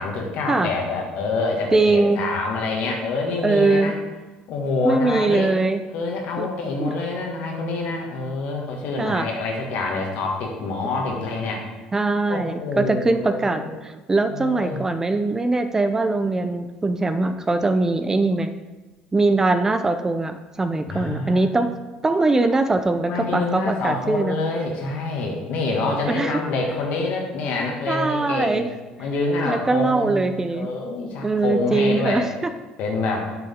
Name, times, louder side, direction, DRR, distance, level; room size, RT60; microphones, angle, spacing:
voice 1, 0.0-3.9 4.5-5.5 5.9-11.7 12.3-13.7 14.3-14.8 20.8-21.4 23.1-28.7 29.0-32.3 32.8-33.3, left 3 dB, 70° left, 1 dB, 1.9 m, -26 dB
voice 2, 1.7-2.2 3.4-3.9 4.8-5.8 6.4-6.5 6.8-6.9 9.0-9.3 11.9-18.5 19.1-21.7 22.0-24.4 26.1-26.4 27.9-28.7 29.4-30.7 31.2-32.3, right 3 dB, 20° right, 9 dB, 0.6 m, -21 dB
8.3 x 6.9 x 3.7 m, 1.2 s
supercardioid pair, 90°, 3 cm